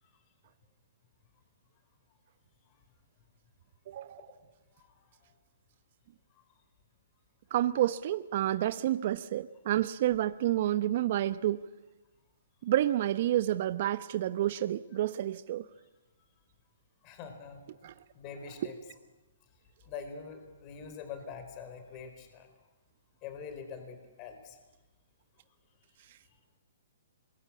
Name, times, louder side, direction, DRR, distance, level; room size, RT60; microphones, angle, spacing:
voice 1, 3.9-4.3 7.5-11.6 12.6-15.7 17.8-17.9 18.6-18.7 26.1-26.2, right 13 dB, 50° right, 0.9 m, -29 dB
voice 2, 4.7-5.3 15.8-15.9 17.0-17.6 18.1-18.8 19.8-22.5 23.2-24.6, left 6 dB, 35° left, 4.7 m, -44 dB
26.0 x 22.5 x 8.7 m
hypercardioid pair, 140°, 0 cm